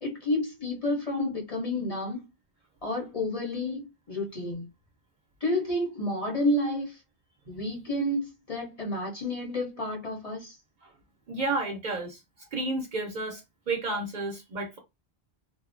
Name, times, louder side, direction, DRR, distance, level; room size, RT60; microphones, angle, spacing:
voice 1, 0.0-2.3 2.8-4.7 5.4-7.0 7.5-10.6, left 1 dB, 40° left, 0.7 m, -30 dB
voice 2, 11.3-12.2 12.5-13.4 13.7-14.8, right 2 dB, 55° right, 0.6 m, -31 dB
2.4 x 2.1 x 2.4 m
omnidirectional pair, 1.1 m